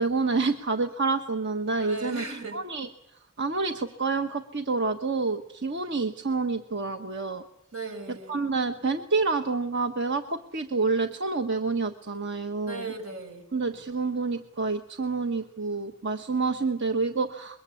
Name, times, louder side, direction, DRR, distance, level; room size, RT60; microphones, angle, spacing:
voice 1, 0.0-2.9 3.4-7.4 8.3-12.9 13.5-17.6, right 4 dB, 55° right, 7 dB, 1.3 m, -28 dB
voice 2, 1.8-2.6 7.7-8.4 12.7-13.4, right 3 dB, 75° right, 6 dB, 5.8 m, -36 dB
25.5 x 22.5 x 8.5 m, 0.76 s
head